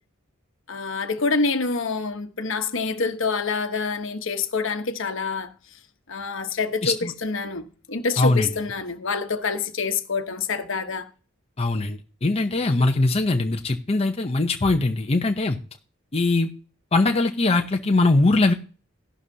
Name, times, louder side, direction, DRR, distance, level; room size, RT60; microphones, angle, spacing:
voice 1, 0.7-5.5 6.1-11.1, left 4 dB, 65° left, 1.1 m, -26 dB
voice 2, 8.2-8.5 11.6-15.6 16.1-16.5 16.9-18.5, left 2 dB, 30° left, 0.7 m, -21 dB
14.0 x 11.5 x 2.8 m
head